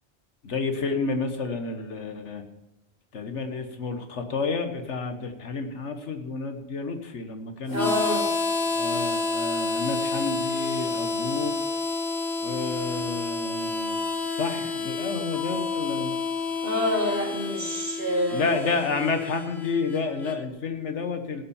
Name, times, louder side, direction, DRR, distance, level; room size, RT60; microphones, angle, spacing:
voice 1, 0.4-2.4 3.1-8.0 8.8-11.5 12.4-14.0 14.3-16.2 18.3-21.4, left 4 dB, 85° left, 7 dB, 1.6 m, -30 dB
Harmonica, 7.7-20.4, left 3 dB, 70° left, 1.5 m, -29 dB
voice 2, 7.7-8.2 16.6-18.7, left 1 dB, 55° right, -2 dB, 3.6 m, -27 dB
16.5 x 7.1 x 5.6 m, 0.98 s
omnidirectional pair, 1.2 m